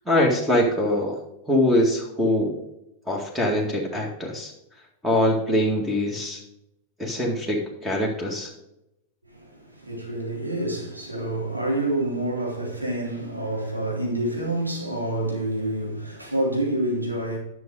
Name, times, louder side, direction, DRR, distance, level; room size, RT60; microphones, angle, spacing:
voice 1, 0.1-1.2 1.5-2.5 3.1-4.5 5.0-6.4 7.0-8.5, left 1 dB, 5° right, 2.1 m, -23 dB
voice 2, 9.3-17.4, right 1 dB, 85° right, 2.8 m, -27 dB
11.0 x 6.2 x 4.8 m
figure-of-eight pair, 90°, 0 cm